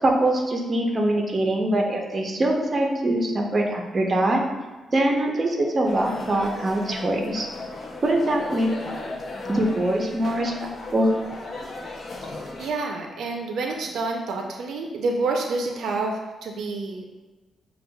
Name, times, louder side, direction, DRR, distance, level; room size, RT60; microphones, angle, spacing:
voice 1, 0.0-4.4 4.9-7.5 8.0-8.7 9.5-11.1, right 1 dB, 30° right, 1 dB, 0.6 m, -23 dB
sound 1, 5.8-12.7, left 2 dB, 45° left, 0.5 m, -36 dB
voice 2, 12.2-17.1, right 3 dB, 75° right, 1 dB, 0.5 m, -28 dB
6.8 x 2.3 x 2.2 m, 1.2 s
cardioid pair, 130°, 0 cm